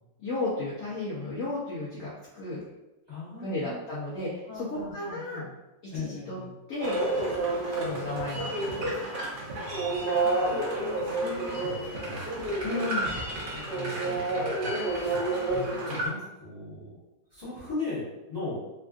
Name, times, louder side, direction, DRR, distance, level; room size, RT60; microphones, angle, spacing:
voice 1, 0.2-2.6 3.4-5.4 5.9-6.4 6.7-7.0 7.7-9.1 12.6-13.1, left 2 dB, 60° left, -7 dB, 0.9 m, -34 dB
voice 2, 3.1-3.8 4.5-5.5 5.9-6.5 9.6-12.2 13.5-15.2 15.5-17.0 17.3-18.6, left 3 dB, 20° left, -11 dB, 1.0 m, -39 dB
sound 1, 6.8-16.1, right 2 dB, 65° right, 0.5 m, -29 dB
3.4 x 2.4 x 2.4 m, 1.0 s
omnidirectional pair, 1.8 m